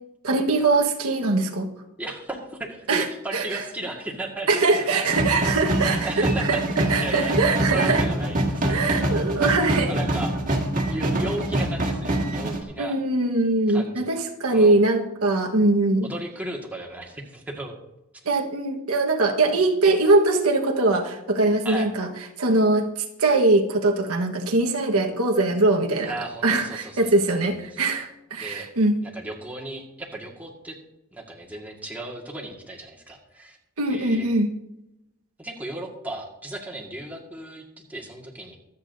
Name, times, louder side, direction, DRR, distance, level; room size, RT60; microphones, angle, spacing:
voice 1, 0.2-1.7 2.9-3.1 3.3-3.6 4.5-6.1 6.4-6.6 6.9-8.0 8.7-9.9 12.8-16.1 18.2-22.1 22.4-26.1 26.4-28.9 33.8-34.5, right 2 dB, 80° right, 2 dB, 1.4 m, -22 dB
voice 2, 2.0-5.3 6.0-6.6 7.0-7.4 7.6-9.3 9.9-10.3 10.7-13.0 13.7-14.1 14.5-14.7 16.0-17.8 21.6-21.9 26.0-27.6 28.4-28.7 29.0-30.8 31.1-33.6 33.9-34.3 35.4-38.6, right 2 dB, 5° right, -2 dB, 1.8 m, -35 dB
sound 1, 5.1-12.6, right 1 dB, 35° right, 1.9 m, -25 dB
24.5 x 8.5 x 2.7 m, 0.90 s
head